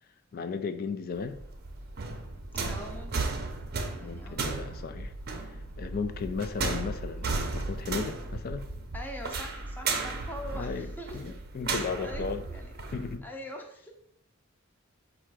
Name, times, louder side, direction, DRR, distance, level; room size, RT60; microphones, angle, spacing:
voice 1, 0.3-1.4 4.0-5.1 5.4-8.7 10.5-12.4 12.9-13.3, left 5 dB, 45° left, 0.4 m, -35 dB
sound 1, 1.2-13.2, right 3 dB, 50° right, 0.6 m, -35 dB
voice 2, 2.7-3.4 3.9-4.5 5.9-6.1 8.9-11.2 12.0-12.7 13.2-13.9, equal, 10° left, 0.6 m, -43 dB
4.5 x 2.5 x 4.7 m
head